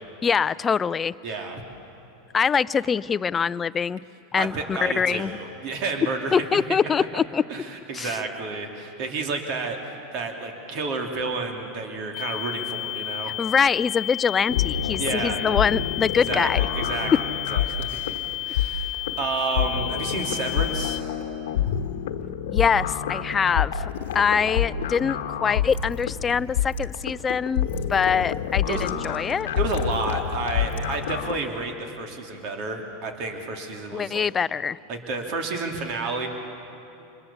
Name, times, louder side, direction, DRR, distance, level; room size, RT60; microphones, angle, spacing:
voice 1, 0.2-1.1 2.3-4.0 4.3-5.4 6.3-7.4 7.9-8.2 13.4-16.6 22.5-29.5 33.9-34.8, left 6 dB, 25° left, 18 dB, 0.4 m, -24 dB
voice 2, 1.2-1.6 4.3-6.6 7.5-13.3 15.0-15.5 16.3-21.0 28.7-28.8 29.5-34.3 34.9-36.3, right 3 dB, 55° right, 3 dB, 3.0 m, -31 dB
sound 1, 12.1-21.0, left 17 dB, 55° left, 0.7 m, -32 dB
sound 2, 14.5-31.4, left 9 dB, 75° left, 1.0 m, -28 dB
27.0 x 22.0 x 7.2 m, 2.8 s
hypercardioid pair, 105°, 0 cm